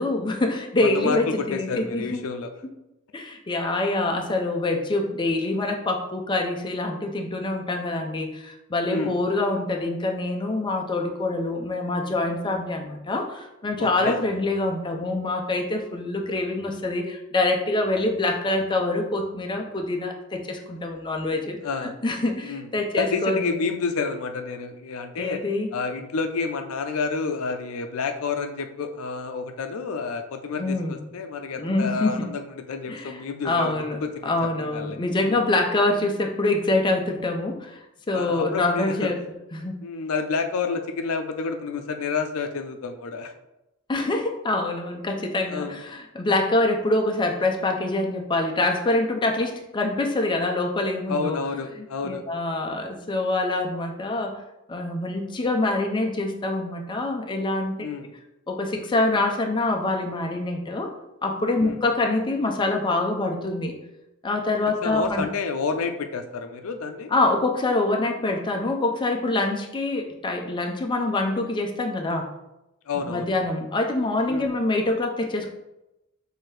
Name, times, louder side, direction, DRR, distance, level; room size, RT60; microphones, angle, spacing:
voice 1, 0.0-2.2 3.1-21.6 21.8-23.6 25.2-25.7 30.5-31.0 31.6-32.3 32.9-33.2 33.4-39.2 39.5-39.8 43.9-51.4 52.0-54.4 54.7-58.1 58.5-60.9 61.2-63.7 64.2-65.3 67.1-72.3 73.1-75.5, left 2 dB, 20° left, 3 dB, 0.4 m, -25 dB
voice 2, 0.8-2.5 8.9-9.2 13.8-14.2 21.6-21.9 22.4-22.7 23.0-25.4 25.7-33.7 34.0-34.3 34.6-35.0 35.3-35.4 38.1-39.1 39.8-43.3 45.5-45.8 51.1-52.2 57.8-58.1 61.6-61.8 64.8-67.1 72.9-73.3 74.3-74.5, left 4 dB, 75° left, 6 dB, 0.5 m, -29 dB
6.0 x 2.7 x 3.2 m, 0.93 s
head